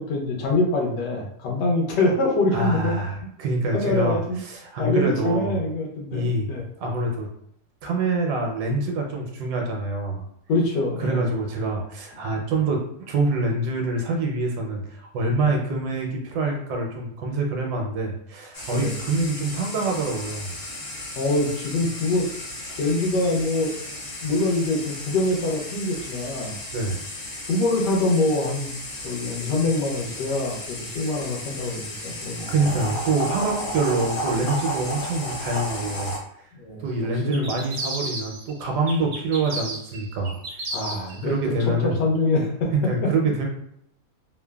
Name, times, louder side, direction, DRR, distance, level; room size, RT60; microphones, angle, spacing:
voice 1, 0.0-3.0 3.7-4.4 4.8-6.7 10.5-11.2 18.7-18.9 21.2-22.3 22.8-23.7 24.2-26.6 27.5-28.8 29.0-32.8 36.5-36.8 37.2-37.5 40.7-41.3 42.0-42.7, left 2 dB, 85° left, -1 dB, 1.3 m, -24 dB
voice 2, 2.5-5.6 6.1-6.5 6.8-7.3 7.8-10.2 11.0-20.6 26.7-27.0 32.5-36.1 36.8-40.6 41.2-41.9 42.7-43.5, right 2 dB, 75° right, 1 dB, 1.1 m, -25 dB
sound 1, 18.5-36.2, equal, 65° left, 1.1 m, -34 dB
sound 2, 37.3-38.5 38.9-41.2, right 2 dB, 60° right, 0.7 m, -33 dB
3.2 x 2.0 x 2.2 m, 0.71 s
omnidirectional pair, 1.8 m